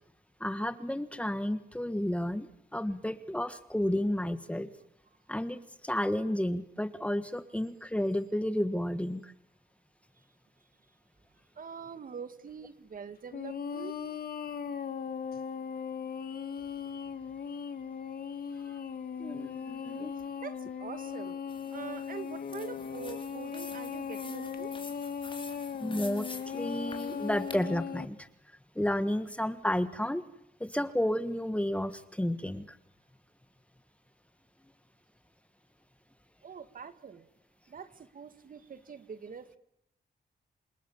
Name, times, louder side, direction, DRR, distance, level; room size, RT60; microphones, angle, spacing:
voice 1, 0.4-2.5 2.7-4.7 5.3-9.3 18.7-18.8 19.2-20.1 25.8-28.3 28.7-30.2 30.6-32.8, left 1 dB, 5° left, 12 dB, 1.5 m, -32 dB
voice 2, 11.6-14.0 20.4-21.4 21.7-24.7 36.4-37.3 37.7-39.6, right 6 dB, 55° right, 11 dB, 1.9 m, -44 dB
sound 1, 13.3-28.1, left 7 dB, 65° left, 1.8 m, -38 dB
sound 2, 21.5-27.6, left 3 dB, 30° left, 4.3 m, -48 dB
28.5 x 27.0 x 7.2 m, 0.78 s
cardioid pair, 105°, 17 cm